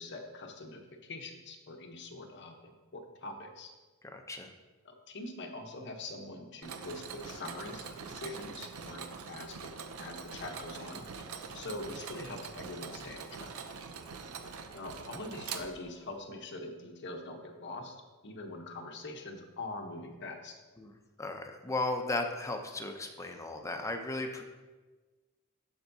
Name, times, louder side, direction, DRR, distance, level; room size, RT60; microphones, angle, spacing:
voice 1, 0.0-3.7 4.8-11.1 11.5-13.5 14.7-18.0 18.2-20.6, left 2 dB, 55° left, 2 dB, 0.9 m, -43 dB
voice 2, 4.0-4.5 20.8-20.9 21.2-24.4, left 2 dB, 15° left, 4 dB, 0.5 m, -35 dB
Mechanisms, 6.6-16.2, right 5 dB, 80° right, 0.6 m, -44 dB
13.0 x 4.5 x 2.7 m, 1.3 s
head